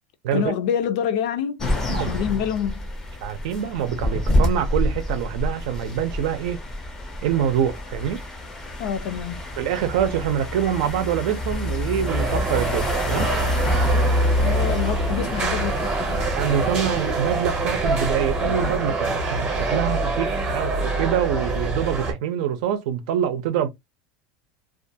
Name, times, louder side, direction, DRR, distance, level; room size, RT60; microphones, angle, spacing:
voice 1, 0.3-2.8 8.8-9.5 14.4-16.2, left 8 dB, 65° left, 0.5 m, -27 dB
sound 1, 1.6-18.8, left 1 dB, 10° left, 0.5 m, -29 dB
voice 2, 3.2-6.6 7.2-8.2 9.6-13.3 16.4-23.7, right 9 dB, 65° right, 0.5 m, -25 dB
sound 2, 12.1-22.1, right 2 dB, 20° right, 0.7 m, -24 dB
2.4 x 2.3 x 2.6 m
supercardioid pair, 175°, 4 cm